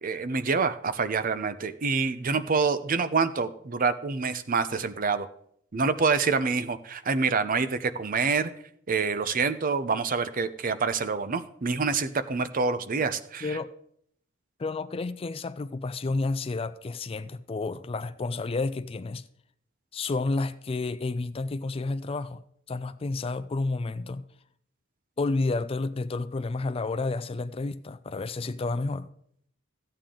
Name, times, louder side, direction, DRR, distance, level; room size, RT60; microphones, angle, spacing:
voice 1, 0.0-5.3 5.7-8.5 8.9-13.6, right 4 dB, 45° right, 0.6 m, -26 dB
voice 2, 13.4-13.7 14.6-19.2 19.9-22.4 22.7-24.2 25.2-29.1, left 3 dB, 30° left, 0.4 m, -30 dB
14.0 x 8.8 x 3.8 m
head